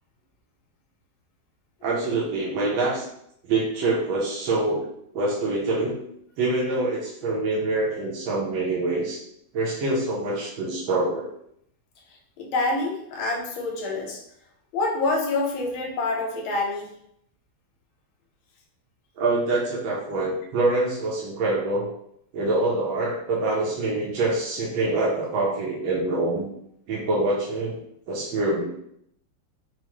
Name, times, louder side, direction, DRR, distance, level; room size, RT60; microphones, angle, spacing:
voice 1, 1.8-3.0 3.4-4.9 5.1-5.9 6.4-9.2 9.5-11.3 19.2-21.9 22.3-26.4 26.9-27.7 28.1-28.6, right 2 dB, 80° right, -4 dB, 1.6 m, -25 dB
voice 2, 12.4-14.2 14.7-16.9, left 2 dB, 85° left, 0 dB, 1.6 m, -26 dB
4.9 x 2.1 x 3.0 m, 0.72 s
omnidirectional pair, 2.2 m